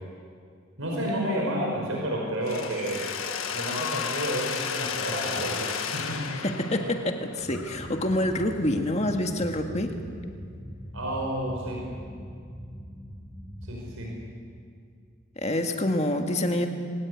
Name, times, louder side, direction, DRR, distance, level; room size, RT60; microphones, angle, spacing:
voice 1, 0.8-3.1 3.5-6.2 10.9-11.9 13.6-14.1, right 1 dB, 85° right, -1 dB, 5.3 m, -30 dB
Mechanisms, 2.5-8.3, left 6 dB, 85° left, 1.6 m, -33 dB
voice 2, 6.3-9.9 15.4-16.7, left 1 dB, 30° left, 4 dB, 1.9 m, -27 dB
sound 1, 7.4-14.3, equal, 10° left, 2.4 m, -42 dB
23.5 x 18.5 x 9.6 m, 2.2 s
head